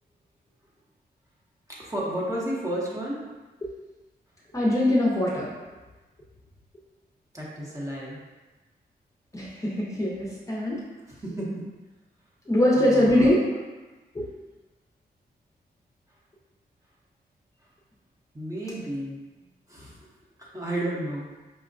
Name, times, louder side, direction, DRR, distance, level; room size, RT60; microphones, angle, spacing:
voice 1, 1.8-3.2 7.3-8.2 11.1-11.8 12.7-13.3 18.3-20.0 20.4-21.3, right 1 dB, 20° right, -5 dB, 0.8 m, -32 dB
voice 2, 4.5-5.5 9.3-10.8 12.5-13.4 14.1-14.2, left 1 dB, 20° left, -5 dB, 0.6 m, -22 dB
5.2 x 2.1 x 2.5 m, 1.2 s
wide cardioid pair, 115°, 17 cm